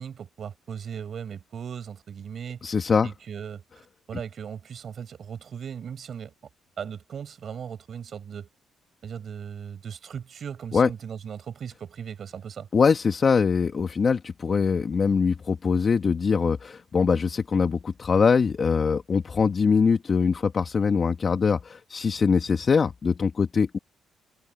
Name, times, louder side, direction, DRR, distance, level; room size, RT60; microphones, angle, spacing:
voice 1, 0.0-3.6 4.1-6.3 6.8-8.5 9.0-12.7, right 7 dB, 55° right, 5.1 m, -38 dB
voice 2, 2.6-3.1 10.7-10.9 12.7-23.8, left 5 dB, 40° left, 1.7 m, -23 dB
cardioid pair, 90°, 0 cm